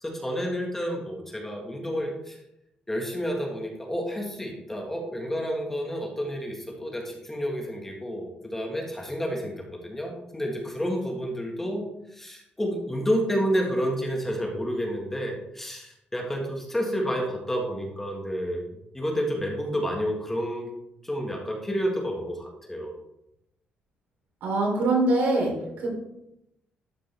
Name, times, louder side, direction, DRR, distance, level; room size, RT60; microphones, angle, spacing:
voice 1, 0.0-2.4 2.9-18.7 18.9-20.7 21.0-22.9, equal, 10° left, 0 dB, 1.5 m, -30 dB
voice 2, 24.4-25.9, right 2 dB, 85° right, -1 dB, 3.1 m, -24 dB
12.0 x 5.0 x 3.4 m, 0.84 s
cardioid pair, 145°, 3 cm